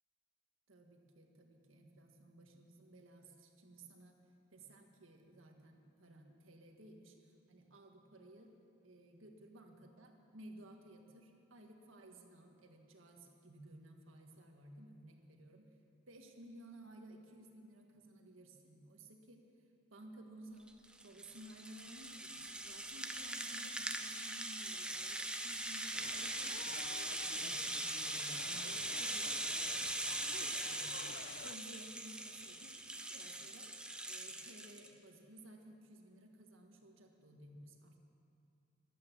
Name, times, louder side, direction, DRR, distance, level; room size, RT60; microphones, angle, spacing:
voice 1, 0.7-4.2 4.5-8.5 8.8-15.7 16.1-19.4 19.9-26.8 27.2-29.9 30.3-31.0 31.4-32.8 33.1-33.7 34.0-38.0, right 1 dB, 75° right, 3 dB, 1.7 m, -57 dB
Rattle (instrument), 20.7-34.9, right 1 dB, 5° right, 0.7 m, -41 dB
sound 1, 25.9-31.6, left 6 dB, 55° left, 0.5 m, -52 dB
14.0 x 11.5 x 7.5 m, 2.6 s
head